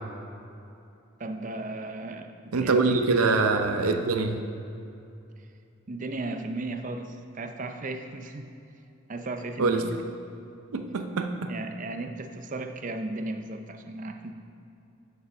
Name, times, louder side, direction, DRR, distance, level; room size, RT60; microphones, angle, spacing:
voice 1, 1.2-3.5 5.9-8.5 9.1-10.0 11.5-14.3, right 2 dB, 35° right, 6 dB, 0.5 m, -35 dB
voice 2, 2.5-4.4 9.6-9.8 10.7-11.5, right 3 dB, 85° right, 6 dB, 0.6 m, -24 dB
6.9 x 6.8 x 5.3 m, 2.7 s
head